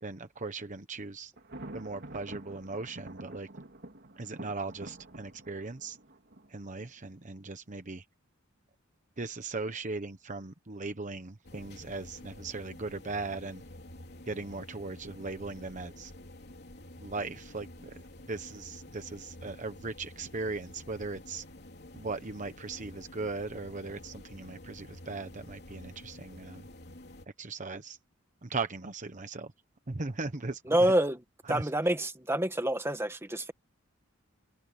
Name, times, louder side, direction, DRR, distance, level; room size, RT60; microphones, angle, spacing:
voice 1, 0.0-1.3 1.7-3.5 4.2-6.0 6.5-8.0 9.2-13.6 14.2-16.1 17.0-18.0 18.3-21.4 21.9-26.7 27.4-28.0 28.4-29.5 29.9-30.6 31.5-31.7, right 3 dB, 40° right, 1.1 m, -38 dB
Thunder, 1.4-7.2, right 1 dB, 55° right, 2.9 m, -48 dB
sound 1, 11.4-27.3, left 1 dB, 55° left, 3.3 m, -49 dB
voice 2, 30.7-31.2 31.5-33.5, right 1 dB, 10° right, 1.7 m, -27 dB
open air
head